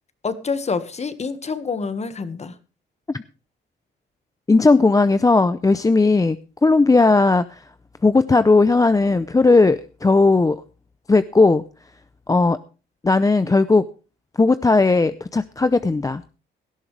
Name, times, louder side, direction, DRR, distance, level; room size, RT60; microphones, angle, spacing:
voice 1, 0.2-2.5, left 4 dB, 35° left, 11 dB, 1.6 m, -27 dB
voice 2, 4.5-7.7 8.0-10.6 11.1-11.6 12.3-12.6 13.0-13.9 14.4-16.2, left 3 dB, 15° left, 13 dB, 0.6 m, -17 dB
17.5 x 12.5 x 3.4 m, 0.34 s
cardioid pair, 90°, 20 cm